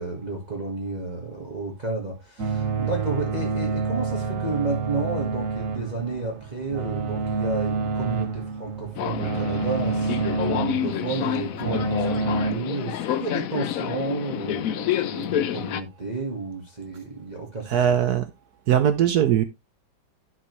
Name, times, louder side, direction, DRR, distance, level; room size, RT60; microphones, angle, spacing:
voice 1, 0.0-17.8, right 3 dB, 20° right, 1.9 m, -31 dB
sound 1, 2.4-12.5, right 4 dB, 50° right, 1.4 m, -28 dB
Subway metro underground, 9.0-15.8, left 11 dB, 70° left, 0.8 m, -28 dB
voice 2, 17.7-18.3 18.7-19.4, right 9 dB, 65° right, 1.1 m, -20 dB
11.5 x 6.3 x 3.1 m
omnidirectional pair, 2.1 m